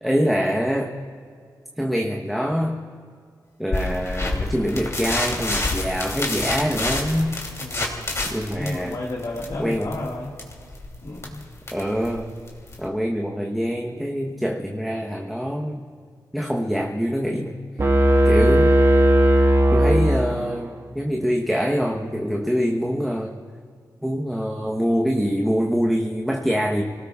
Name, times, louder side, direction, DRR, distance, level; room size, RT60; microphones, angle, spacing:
voice 1, 0.0-0.9 1.8-2.8 3.6-7.4 8.3-9.0 9.6-9.9 11.7-12.3 12.8-15.8 16.3-17.6 18.2-18.7 19.7-23.4 24.0-26.8, equal, ahead, 0 dB, 1.0 m, -24 dB
sound 1, 3.7-12.9, left 2 dB, 40° left, 2.9 m, -28 dB
voice 2, 7.6-8.0 8.6-10.3 11.0-11.4, left 2 dB, 60° left, -4 dB, 1.8 m, -32 dB
sound 2, 17.8-20.7, right 1 dB, 40° right, 1.3 m, -17 dB
30.0 x 18.0 x 2.4 m, 2.1 s
wide cardioid pair, 95°, 8 cm